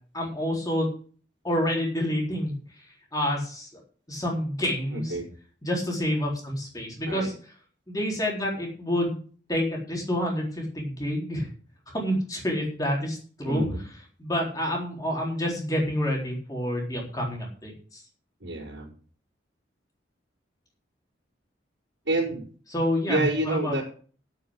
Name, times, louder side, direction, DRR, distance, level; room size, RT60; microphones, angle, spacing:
voice 1, 0.1-0.9 1.4-2.6 3.1-3.7 4.1-5.1 5.6-7.3 7.9-9.2 9.5-11.5 11.9-13.6 14.2-18.0 22.7-23.7, equal, 20° left, -2 dB, 4.0 m, -28 dB
voice 2, 4.9-5.3 7.0-7.3 13.4-13.8 18.4-18.9 22.0-22.4 23.1-23.8, right 2 dB, 85° right, -7 dB, 4.8 m, -28 dB
9.5 x 8.6 x 7.7 m, 0.43 s
head